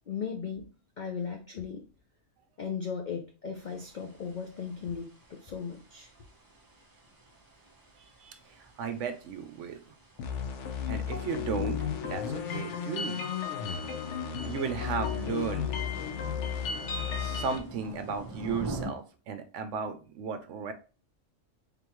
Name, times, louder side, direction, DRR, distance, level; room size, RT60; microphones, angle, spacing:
voice 1, 0.1-0.7 1.0-1.9 2.6-6.1, left 6 dB, 85° left, 3 dB, 0.4 m, -37 dB
sound 1, 3.5-18.9, right 2 dB, 20° right, 0.6 m, -47 dB
voice 2, 8.0-9.8 10.9-13.2 14.5-15.7 17.2-20.7, right 6 dB, 70° right, 9 dB, 0.8 m, -35 dB
sound 2, 10.2-17.6, left 7 dB, 65° left, 0.9 m, -33 dB
3.8 x 3.4 x 3.0 m, 0.34 s
omnidirectional pair, 1.5 m